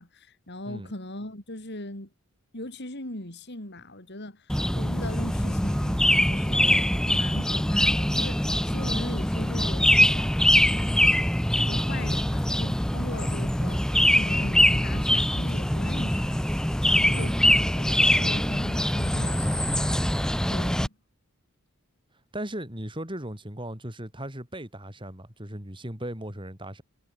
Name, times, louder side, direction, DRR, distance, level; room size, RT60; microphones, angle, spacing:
voice 1, 0.0-2.1 2.5-10.3 10.6-11.3 11.6-16.4 16.8-19.8 20.5-21.0, left 1 dB, 55° left, 4.6 m, -40 dB
sound 1, 4.5-20.9, left 1 dB, 5° left, 0.6 m, -23 dB
voice 2, 22.3-26.8, right 1 dB, 25° right, 5.9 m, -37 dB
head